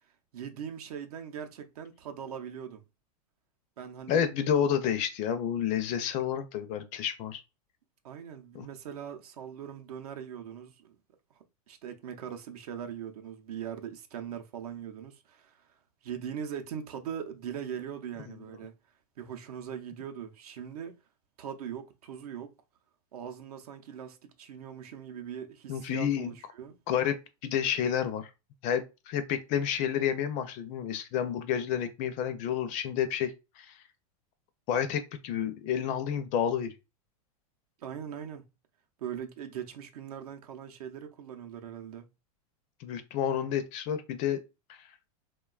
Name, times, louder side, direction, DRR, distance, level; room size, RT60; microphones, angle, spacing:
voice 1, 0.3-2.8 3.8-4.3 8.0-11.0 11.7-15.6 16.0-18.7 19.2-21.0 21.4-22.5 23.1-26.7 37.8-38.5 39.0-42.1, right 8 dB, 75° right, 0.6 m, -40 dB
voice 2, 4.1-7.4 8.5-8.7 25.7-26.3 26.9-28.3 28.6-33.7 34.7-36.7 42.8-44.4, left 9 dB, 40° left, 0.4 m, -30 dB
2.9 x 2.2 x 2.3 m
hypercardioid pair, 130°, 20 cm